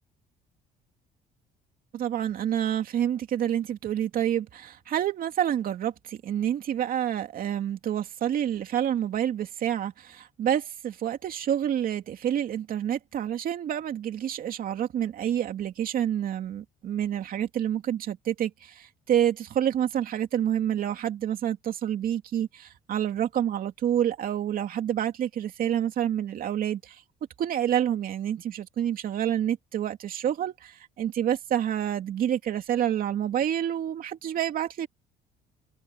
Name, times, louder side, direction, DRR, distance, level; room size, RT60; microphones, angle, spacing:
voice 1, 1.9-27.0 27.4-34.9, right 10 dB, 60° right, 2.6 m, -28 dB
cardioid pair, 110°, 17 cm